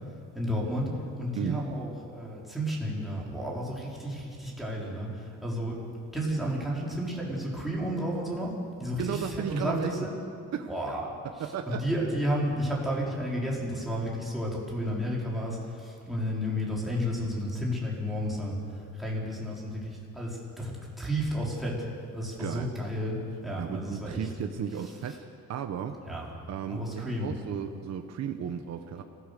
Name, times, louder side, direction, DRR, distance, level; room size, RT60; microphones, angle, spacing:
voice 1, 0.3-0.9 1.2-5.8 6.1-8.5 8.8-10.1 10.7-20.7 21.0-21.7 22.1-23.2 23.4-24.3 26.0-26.3 26.7-27.3, equal, ahead, -5 dB, 4.4 m, -32 dB
voice 2, 8.9-9.9 10.5-10.7 11.4-11.9 22.4-22.7 23.6-26.0 26.5-29.0, right 8 dB, 60° right, 6 dB, 1.1 m, -34 dB
26.0 x 16.5 x 6.9 m, 2.4 s
cardioid pair, 165°, 30 cm